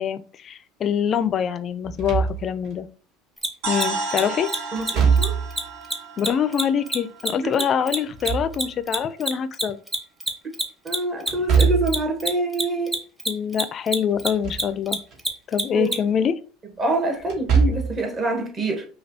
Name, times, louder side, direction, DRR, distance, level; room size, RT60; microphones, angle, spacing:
voice 1, 0.0-2.9 3.7-4.5 6.2-9.8 13.3-15.0 15.5-16.4, left 8 dB, 40° left, 0.4 m, -24 dB
Slam / Thump thud, 1.8-2.7 4.8-5.7 7.9-9.0 11.3-12.1 14.1-14.7 15.1-15.2 17.2-18.0, right 6 dB, 60° right, 1.2 m, -22 dB
Mechanisms, 3.4-3.5 3.7-3.9 4.1-4.2 4.5-4.6 4.8-4.9 5.2-5.3 5.5-5.6 5.9-8.6 8.9-16.0, right 1 dB, 10° right, 0.8 m, -25 dB
sound 1, 3.6-7.6, right 3 dB, 75° right, 1.4 m, -32 dB
voice 2, 4.7-5.4 7.4-7.5 10.8-12.9 15.7-16.0 16.8-18.9, right 2 dB, 30° right, 1.2 m, -26 dB
5.2 x 2.3 x 2.7 m
supercardioid pair, 105°, 0 cm